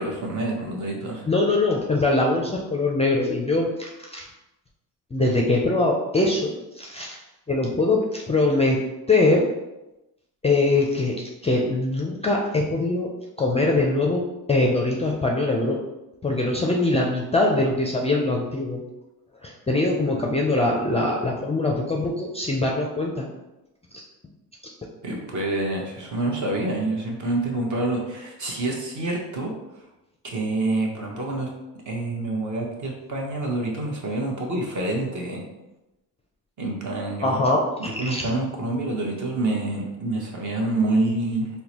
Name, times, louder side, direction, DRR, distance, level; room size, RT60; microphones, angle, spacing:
voice 1, 0.0-1.3 25.0-29.5 30.2-31.5 31.8-35.4 36.6-37.4 37.8-41.5, right 2 dB, 45° right, -1 dB, 1.0 m, -27 dB
voice 2, 1.3-4.3 5.1-7.2 7.5-8.8 9.1-9.4 10.4-13.1 13.4-15.8 16.2-18.8 19.4-23.3 23.9-24.1 24.6-24.7 37.2-38.3, left 2 dB, 15° left, -1 dB, 0.4 m, -22 dB
3.6 x 2.2 x 2.9 m, 0.98 s
supercardioid pair, 70°, 42 cm